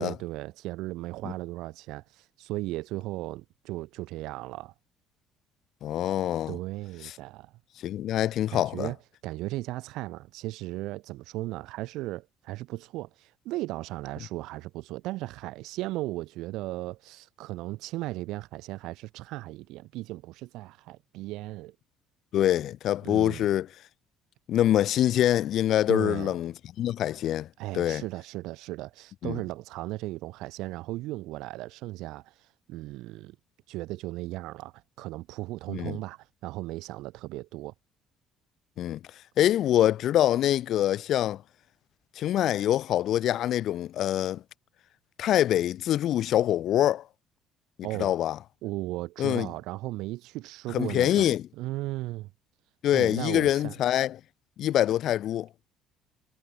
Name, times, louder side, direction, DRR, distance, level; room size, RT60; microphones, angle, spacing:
voice 1, 0.0-4.7 6.5-7.5 8.5-9.0 9.2-21.8 23.0-23.4 25.9-26.3 27.6-33.4 33.7-37.7 47.8-48.1 48.6-52.3 52.9-53.7, right 18 dB, 80° right, 0.5 m, -36 dB
voice 2, 5.8-6.6 7.0-7.1 7.8-8.9 22.3-23.7 24.5-27.5 27.7-28.0 29.2-29.4 35.7-36.0 38.8-39.0 39.4-41.4 42.2-44.4 45.2-47.0 48.0-48.4 49.2-49.5 50.7-51.5 52.8-54.2 54.6-55.5, left 12 dB, 60° left, 0.5 m, -25 dB
cardioid pair, 120°, 0 cm